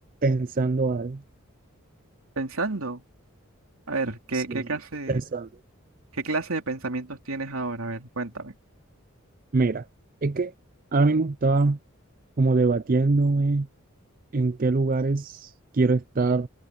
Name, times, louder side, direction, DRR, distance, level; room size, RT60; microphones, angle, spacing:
voice 1, 0.2-1.2 4.3-4.7 5.1-5.5 9.5-9.9 10.2-10.5 10.9-11.8 12.4-13.7 14.3-16.5, right 3 dB, 40° right, 0.5 m, -23 dB
voice 2, 2.4-3.0 3.9-5.2 6.1-8.5, right 3 dB, 80° right, 2.9 m, -30 dB
head